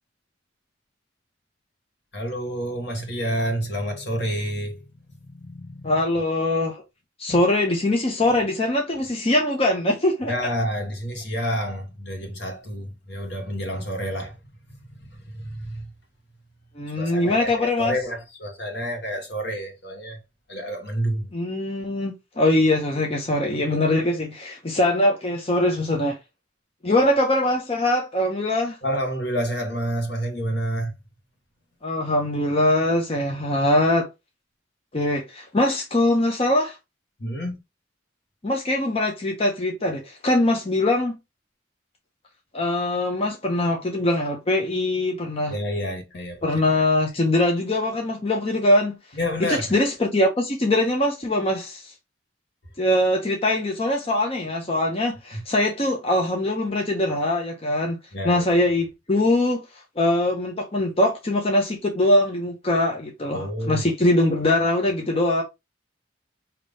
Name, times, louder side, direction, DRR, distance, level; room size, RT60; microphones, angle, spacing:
voice 1, 2.1-4.9 5.2-5.9 7.3-7.4 10.3-14.4 15.0-15.9 17.0-20.2 20.5-21.3 28.8-30.9 37.2-37.6 45.5-46.5 49.1-49.7 58.1-58.5 63.3-63.9, equal, 65° left, 1.4 m, -29 dB
voice 2, 5.8-6.8 7.2-10.3 16.8-17.9 21.3-26.2 26.8-28.8 31.8-34.1 34.9-36.8 38.4-41.2 42.5-45.5 46.4-49.0 49.4-51.9 52.8-58.0 58.2-59.6 60.0-65.4, left 1 dB, 30° left, 0.8 m, -22 dB
5.3 x 2.9 x 3.4 m
head